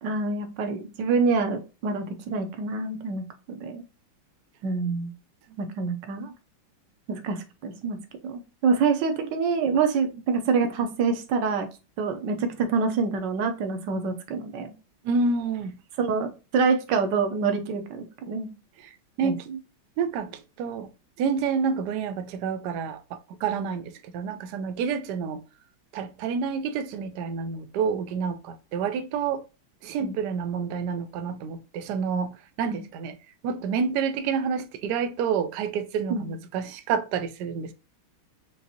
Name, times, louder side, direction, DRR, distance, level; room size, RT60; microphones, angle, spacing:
voice 1, 0.0-3.8 4.6-5.1 5.6-6.3 7.1-8.0 8.2-11.7 12.0-14.7 16.0-18.5 19.2-19.6 30.0-30.2 32.7-32.8 36.1-36.3, right 5 dB, 70° right, 1.2 m, -26 dB
voice 2, 15.0-15.7 18.8-18.9 19.2-19.4 20.0-20.9 21.2-25.4 25.9-29.4 29.8-33.1 33.4-37.7, right 6 dB, 90° right, 0.9 m, -28 dB
5.4 x 2.5 x 2.7 m
omnidirectional pair, 2.3 m